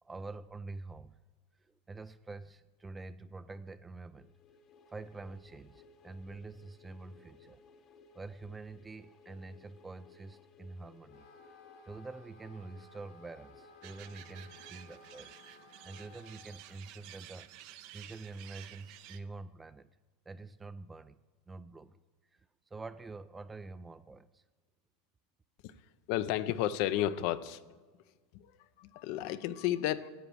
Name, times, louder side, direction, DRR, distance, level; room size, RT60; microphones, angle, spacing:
voice 1, 0.0-1.2 1.6-4.3 4.9-7.6 8.1-11.3 11.8-15.3 15.8-19.9 20.3-21.2 21.5-22.0 22.3-22.5 22.7-24.4, right 3 dB, 15° right, 13 dB, 0.3 m, -47 dB
sound 1, 4.1-15.9, left 4 dB, 45° left, 1.1 m, -60 dB
Wind instrument woodwind instrument, 11.0-16.7, left 4 dB, 80° left, 2.0 m, -58 dB
sound 2, 13.8-19.2, right 13 dB, 60° right, 0.6 m, -52 dB
voice 2, 26.1-27.6 28.3-28.5 28.8-30.1, left 13 dB, 60° left, 14 dB, 0.5 m, -32 dB
10.0 x 8.4 x 4.7 m, 1.4 s
hypercardioid pair, 105°, 0 cm